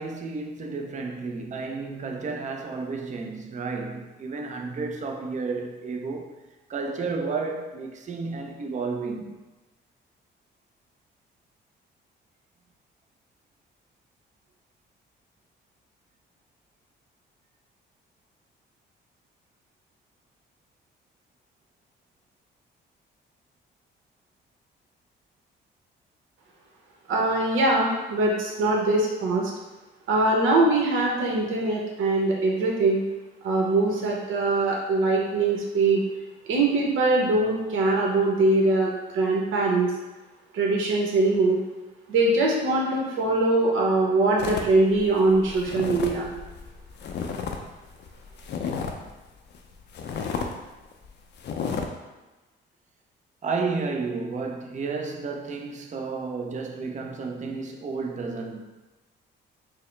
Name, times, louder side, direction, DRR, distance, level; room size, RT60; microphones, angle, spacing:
voice 1, 0.0-6.3 6.7-9.4 53.4-58.6, right 4 dB, 40° right, 0.5 m, -32 dB
voice 2, 27.1-29.5 30.1-33.0 33.4-36.0 36.5-39.9 40.5-41.6 42.1-46.3, right 2 dB, 80° right, 0.9 m, -22 dB
sound 1, 44.4-47.6 47.9-49.1 49.5-49.6 49.9-50.5 50.9-51.1 51.4-51.8, left 6 dB, 60° left, 0.5 m, -32 dB
4.7 x 2.0 x 3.2 m
cardioid pair, 90°, 20 cm